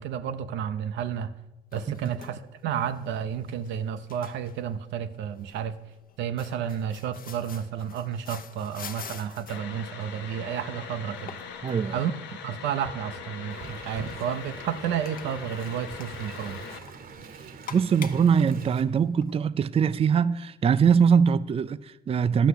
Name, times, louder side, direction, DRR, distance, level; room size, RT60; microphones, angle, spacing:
voice 1, 0.0-1.3 1.7-5.7 6.2-11.4 11.9-12.1 12.4-16.6, right 8 dB, 85° right, 0.7 m, -31 dB
sound 1, 1.7-19.4, left 7 dB, 50° left, 0.9 m, -48 dB
sound 2, 9.5-16.8, left 6 dB, 85° left, 1.1 m, -41 dB
voice 2, 11.6-12.0 17.7-22.5, right 6 dB, 35° right, 0.4 m, -22 dB
Wind, 13.5-18.8, right 4 dB, 55° right, 1.0 m, -44 dB
11.5 x 5.7 x 8.1 m
supercardioid pair, 70°, 18 cm